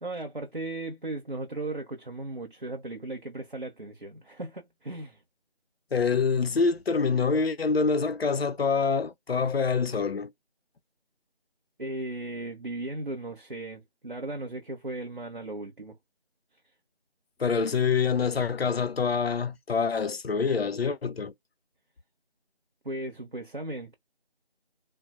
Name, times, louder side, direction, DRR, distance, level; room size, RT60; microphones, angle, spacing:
voice 1, 0.0-5.2 11.8-16.0 22.8-23.9, right 2 dB, 55° right, 0.7 m, -36 dB
voice 2, 5.9-10.3 17.4-21.3, left 5 dB, 70° left, 0.5 m, -26 dB
3.4 x 2.0 x 2.4 m
figure-of-eight pair, 180°, 32 cm